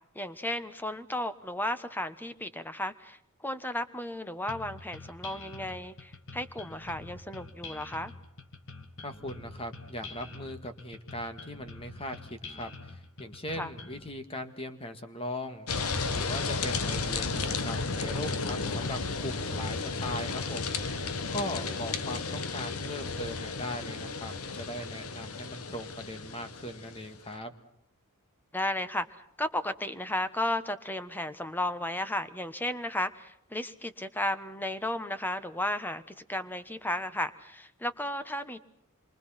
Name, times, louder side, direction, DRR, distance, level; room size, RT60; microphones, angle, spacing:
voice 1, 0.1-3.2 3.4-8.1 13.5-13.7 21.5-21.8 28.5-29.1 29.4-38.6, left 1 dB, 10° left, 11 dB, 1.1 m, -34 dB
sound 1, 4.5-14.1, left 3 dB, 60° left, 2.2 m, -46 dB
voice 2, 9.0-15.7 16.1-20.8 21.3-27.5, left 1 dB, 25° left, 7 dB, 1.9 m, -39 dB
sound 2, 15.7-27.1, left 4 dB, 85° left, 1.3 m, -33 dB
27.0 x 23.5 x 5.9 m, 0.75 s
head